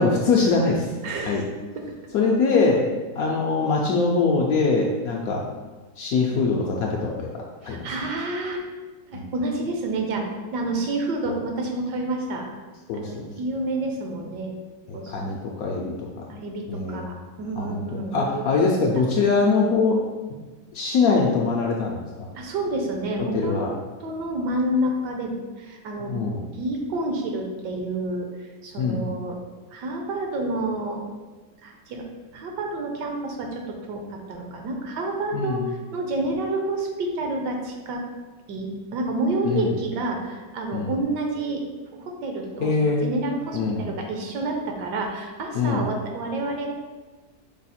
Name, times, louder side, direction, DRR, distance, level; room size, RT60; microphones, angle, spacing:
voice 1, 0.0-0.9 1.3-1.4 2.1-2.8 3.2-5.4 6.0-7.3 7.6-7.8 9.1-9.3 11.3-11.4 12.9-13.3 14.9-16.1 16.7-17.0 17.6-17.8 18.1-20.0 20.7-22.3 23.3-23.7 26.1-26.4 28.8-29.0 35.3-35.6 39.4-39.7 40.7-40.9 42.6-43.1 43.5-43.9 45.5-45.9, left 4 dB, 70° left, -1 dB, 0.9 m, -22 dB
voice 2, 1.0-1.4 1.8-1.9 5.1-5.3 7.6-8.6 9.1-12.4 12.9-14.5 14.9-15.1 16.3-18.7 22.3-23.6 24.0-26.2 26.5-29.4 29.7-31.0 31.6-32.1 32.3-38.0 38.5-41.6 41.9-46.7, right 2 dB, 75° right, 2 dB, 1.3 m, -29 dB
5.3 x 2.4 x 4.1 m, 1.3 s
omnidirectional pair, 1.9 m